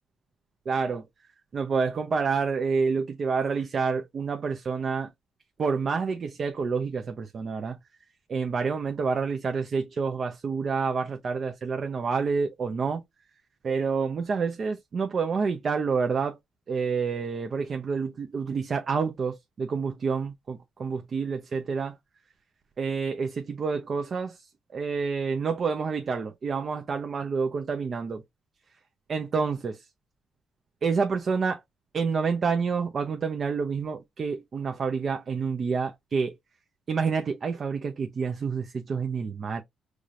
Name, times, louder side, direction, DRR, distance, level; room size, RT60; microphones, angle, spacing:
voice 1, 0.7-1.1 1.5-5.1 5.6-7.8 8.3-13.0 13.6-16.4 16.7-22.0 22.8-28.2 29.1-29.9 30.8-31.6 31.9-36.4 36.9-39.6, right 5 dB, 45° right, 0.7 m, -28 dB
4.8 x 2.5 x 2.8 m
cardioid pair, 90°, 0 cm